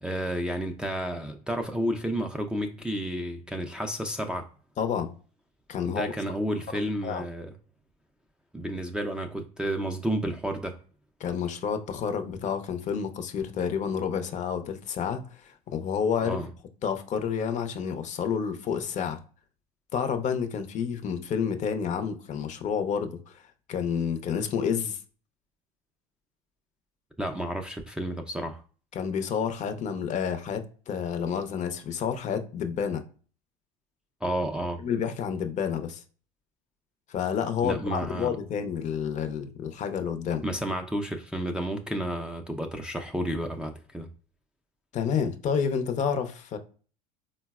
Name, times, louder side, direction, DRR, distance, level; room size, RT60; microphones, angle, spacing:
voice 1, 0.0-4.5 5.9-7.5 8.5-10.8 16.2-16.5 27.2-28.6 34.2-34.8 37.6-38.4 40.4-44.1, equal, 5° right, 0.4 m, -31 dB
voice 2, 4.8-5.1 5.7-6.1 7.0-7.3 11.2-16.4 16.8-19.2 19.9-23.4 23.7-25.0 28.9-33.0 34.6-36.0 37.1-40.4 44.9-46.6, left 7 dB, 40° left, 0.6 m, -29 dB
3.8 x 2.0 x 2.3 m
supercardioid pair, 95°, 19 cm